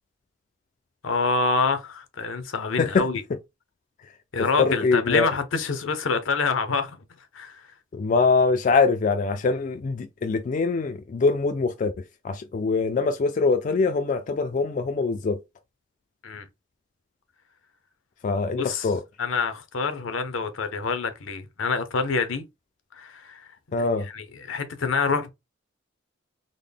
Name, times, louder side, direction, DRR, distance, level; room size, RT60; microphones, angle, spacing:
voice 1, 1.0-3.2 4.3-7.0 7.3-7.6 16.2-16.5 18.6-18.9 19.2-22.4 22.9-23.5 23.8-23.9 24.1-25.3, left 4 dB, 80° left, 0.7 m, -26 dB
voice 2, 4.4-5.3 7.9-11.9 12.2-15.4 18.2-19.0 23.7-24.1, left 4 dB, 40° left, 0.3 m, -23 dB
3.8 x 2.1 x 3.3 m
head